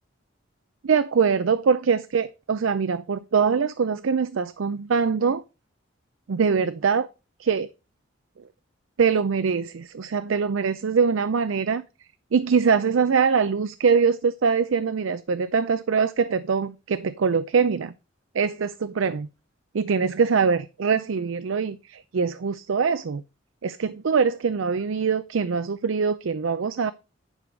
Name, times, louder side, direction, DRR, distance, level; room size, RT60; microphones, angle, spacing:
voice 1, 0.8-5.4 6.3-7.1 7.4-7.7 9.0-11.8 12.3-17.9 18.3-19.3 19.7-23.2 23.6-26.9, right 5 dB, 75° right, 0.5 m, -23 dB
10.0 x 4.8 x 5.1 m
head